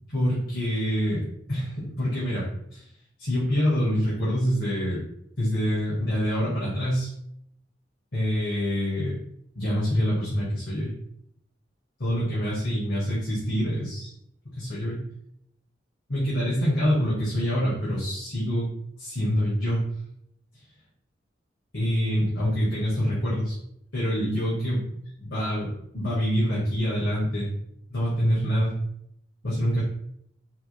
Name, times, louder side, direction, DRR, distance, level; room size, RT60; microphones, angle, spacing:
voice 1, 0.1-1.2 1.5-2.9 3.2-5.0 5.4-7.1 8.1-9.2 9.6-10.9 12.0-14.1 14.4-15.0 16.1-18.7 19.0-19.8 21.7-23.6 23.9-24.9 25.2-27.5 27.9-28.7 29.4-29.8, equal, 90° left, -8 dB, 1.9 m, -26 dB
5.7 x 3.9 x 2.3 m, 0.74 s
head